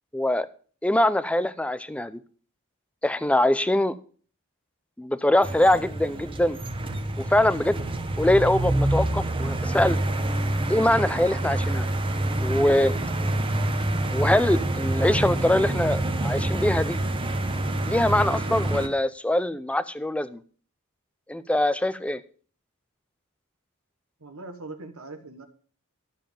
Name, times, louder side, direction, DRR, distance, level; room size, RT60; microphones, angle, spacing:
voice 1, 0.1-0.5 0.8-2.2 3.0-3.9 5.0-6.6 7.3-7.9 8.2-10.0 10.7-11.9 12.4-12.9 14.1-17.0 17.8-20.4 21.3-22.2, left 1 dB, 5° left, 15 dB, 0.5 m, -23 dB
sound 1, 5.4-18.9, right 1 dB, 25° right, 1.0 m, -27 dB
voice 2, 24.2-25.4, right 2 dB, 70° right, 7 dB, 1.4 m, -41 dB
12.5 x 7.3 x 5.2 m, 0.43 s
head